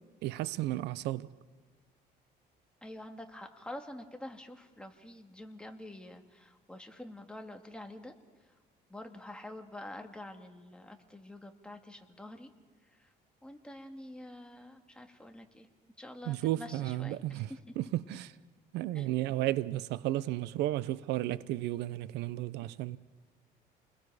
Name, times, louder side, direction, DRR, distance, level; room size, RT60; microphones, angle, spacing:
voice 1, 0.2-1.3 16.3-17.5 17.8-18.3 18.7-23.0, right 15 dB, 85° right, 0.7 m, -33 dB
voice 2, 2.8-8.1 8.9-12.5 12.9-13.1 13.4-15.7 16.0-17.6 18.9-19.1, left 1 dB, 5° left, 2.1 m, -47 dB
29.0 x 21.0 x 4.9 m
cardioid pair, 110°, 17 cm